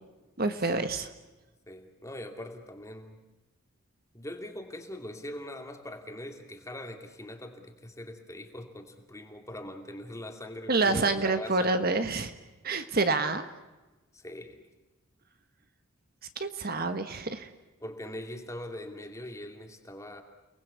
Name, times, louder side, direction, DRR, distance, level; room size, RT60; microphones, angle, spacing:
voice 1, 0.4-1.1 10.7-12.3 12.6-13.4 16.4-17.5, right 3 dB, 45° right, 8 dB, 1.4 m, -27 dB
voice 2, 1.7-3.2 4.1-11.7 14.1-14.7 17.8-20.2, left 1 dB, 15° left, 4 dB, 2.6 m, -42 dB
30.0 x 19.5 x 8.3 m, 1.1 s
head